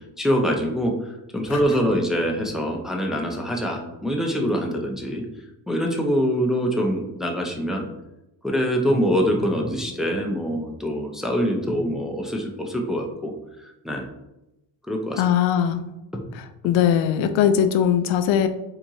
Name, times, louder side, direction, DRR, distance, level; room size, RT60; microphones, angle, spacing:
voice 1, 0.2-0.9 1.3-5.2 5.7-7.9 8.4-13.3 13.8-14.1 14.9-15.2 16.1-16.3, equal, ahead, 1 dB, 0.6 m, -24 dB
voice 2, 15.2-15.8 16.6-18.5, left 9 dB, 80° left, 10 dB, 0.5 m, -20 dB
4.4 x 3.8 x 2.7 m, 0.92 s
cardioid pair, 100°, 46 cm